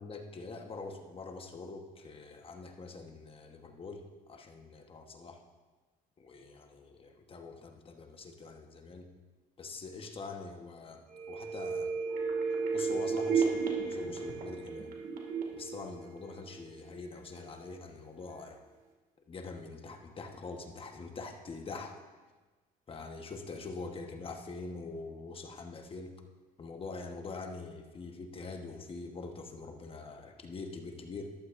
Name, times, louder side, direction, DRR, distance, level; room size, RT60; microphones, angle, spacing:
voice 1, 0.0-5.4 6.2-9.1 9.6-12.0 12.7-13.5 13.8-14.9 15.5-18.6 19.3-21.9 22.9-26.1 26.6-31.3, left 3 dB, 35° left, 4 dB, 1.2 m, -44 dB
sound 1, 11.1-16.8 17.1-17.2, right 5 dB, 55° right, 2.1 m, -33 dB
13.5 x 11.5 x 2.6 m, 1.3 s
cardioid pair, 110°, 17 cm